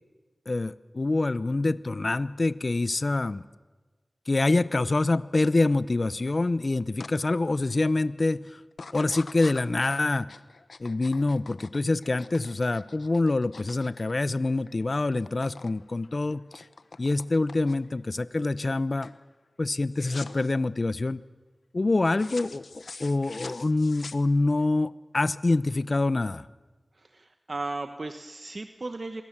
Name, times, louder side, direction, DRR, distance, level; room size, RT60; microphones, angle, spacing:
voice 1, 0.5-3.4 4.3-8.6 8.9-10.3 10.8-16.6 17.0-19.1 19.6-21.2 21.7-26.4, left 2 dB, 50° left, 16 dB, 0.8 m, -26 dB
sound 1, 7.0-7.2 7.6-8.0 8.7-14.8 15.0-15.7 16.0-18.0 18.5-18.8 19.0-19.2 19.9-20.5 22.1-24.6, left 4 dB, 90° left, 1.1 m, -45 dB
voice 2, 26.9-29.2, right 2 dB, 55° right, 7 dB, 1.2 m, -36 dB
28.0 x 22.0 x 7.4 m, 1.3 s
wide cardioid pair, 65°, 0 cm